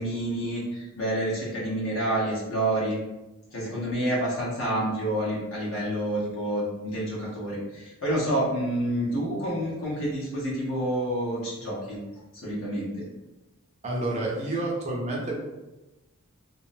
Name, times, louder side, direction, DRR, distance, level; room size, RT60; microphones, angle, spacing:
voice 1, 0.0-3.0 3.5-12.0 12.4-13.1, right 1 dB, 60° left, -5 dB, 0.9 m, -28 dB
voice 2, 13.8-15.4, right 2 dB, 30° right, -2 dB, 0.5 m, -29 dB
2.6 x 2.0 x 2.6 m, 1.0 s
head